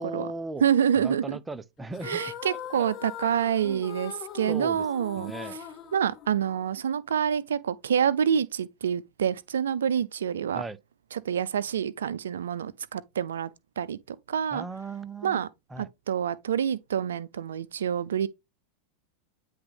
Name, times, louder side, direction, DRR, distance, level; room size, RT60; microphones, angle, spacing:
voice 1, 0.0-0.7 1.0-2.2 2.8-2.9 3.6-3.8 4.5-4.8 5.2-5.6 10.5-10.8 14.5-15.4 15.7-15.9, right 3 dB, 10° right, 0.6 m, -37 dB
voice 2, 0.6-1.4 2.0-5.3 5.9-10.6 11.1-13.5 13.8-14.7 15.2-15.5 15.8-18.3, right 8 dB, 85° right, 0.4 m, -27 dB
sound 1, 1.9-6.8, left 9 dB, 35° left, 0.8 m, -41 dB
9.4 x 3.5 x 3.4 m
hypercardioid pair, 105°, 0 cm